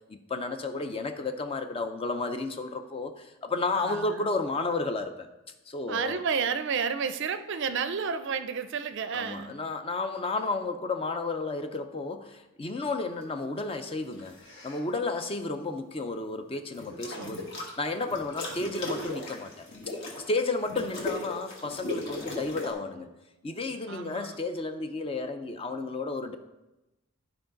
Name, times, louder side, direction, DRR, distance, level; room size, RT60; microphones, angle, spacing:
voice 1, 0.1-5.3 5.7-6.2 9.1-14.4 14.6-23.1 23.4-26.4, left 3 dB, 25° left, 8 dB, 0.4 m, -32 dB
voice 2, 3.7-4.2 5.9-9.5 17.0-17.4 23.9-24.4, right 6 dB, 55° right, 11 dB, 0.4 m, -31 dB
sound 1, 14.1-14.8 16.7-17.7 18.1-22.7, left 2 dB, 50° left, 1.5 m, -37 dB
12.0 x 4.7 x 3.8 m, 1.0 s
head